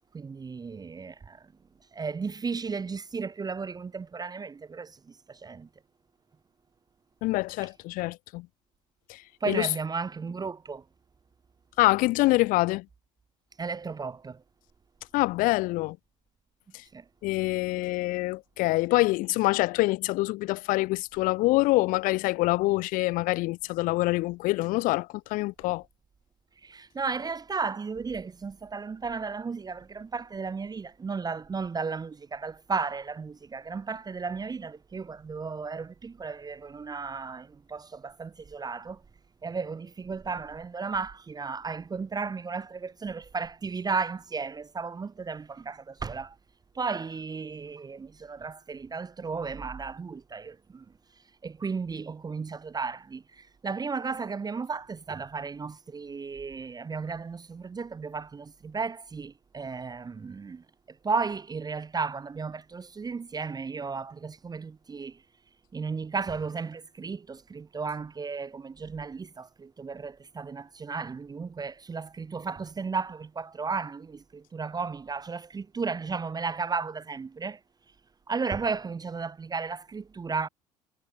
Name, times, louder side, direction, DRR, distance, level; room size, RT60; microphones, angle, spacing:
voice 1, 0.1-1.4 1.9-5.7 9.4-10.8 13.6-14.4 16.9-17.0 26.6-39.0 39.4-46.4 46.7-50.8 51.4-60.6 61.0-65.2 65.7-77.6 78.3-80.5, right 5 dB, 20° right, 1.0 m, -34 dB
voice 2, 7.2-8.5 9.1-9.7 11.8-12.9 15.1-16.0 16.7-16.8 17.2-25.8, left 20 dB, 50° left, 0.5 m, -25 dB
figure-of-eight pair, 60°, 18 cm